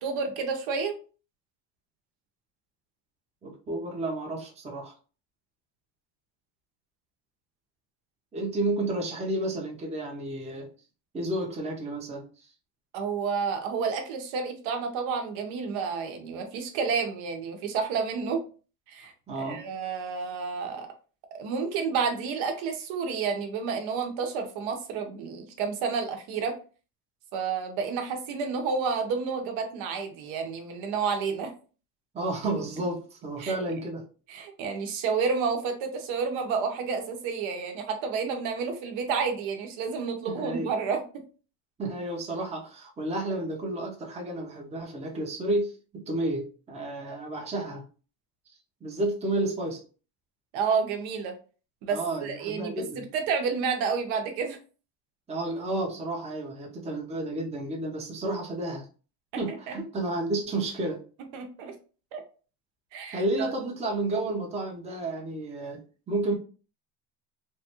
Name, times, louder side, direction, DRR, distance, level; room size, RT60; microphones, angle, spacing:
voice 1, 0.0-0.9 12.9-18.4 18.9-19.1 19.4-20.9 21.3-26.5 27.3-31.5 33.4-33.6 34.3-41.0 50.5-51.4 51.8-52.8 53.1-54.6 59.3-59.7 61.3-61.8 62.1-62.2 62.9-63.5, right 5 dB, 80° right, 5 dB, 0.9 m, -30 dB
voice 2, 3.4-4.9 8.3-10.7 11.1-12.3 19.3-19.6 32.1-34.1 40.3-40.7 41.8-47.8 48.8-49.8 51.9-53.0 55.3-58.9 59.4-61.0 63.1-66.4, right 2 dB, 15° right, 0 dB, 0.6 m, -31 dB
3.2 x 2.4 x 2.9 m, 0.37 s
cardioid pair, 140°, 46 cm